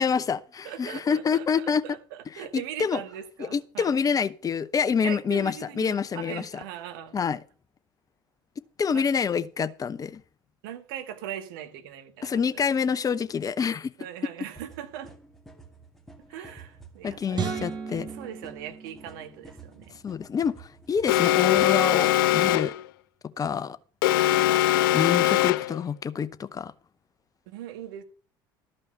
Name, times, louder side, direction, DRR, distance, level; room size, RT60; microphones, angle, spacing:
voice 1, 0.0-1.8 2.4-3.0 3.4-6.5 7.1-7.4 8.8-10.2 12.2-13.9 17.0-18.1 20.0-22.7 23.4-23.8 24.9-26.7, left 6 dB, 30° left, 0.8 m, -27 dB
voice 2, 0.6-3.9 5.0-7.2 8.9-9.0 10.6-12.6 14.0-15.2 16.3-20.0 24.3-24.6 27.5-28.0, right 10 dB, 70° right, 1.6 m, -40 dB
sound 1, 14.6-22.6, right 3 dB, 5° left, 2.2 m, -50 dB
sound 2, 17.3-19.7, right 5 dB, 40° right, 2.8 m, -35 dB
Alarm, 21.1-22.8 24.0-25.8, left 14 dB, 75° left, 0.4 m, -21 dB
13.0 x 5.4 x 6.8 m
hypercardioid pair, 65°, 12 cm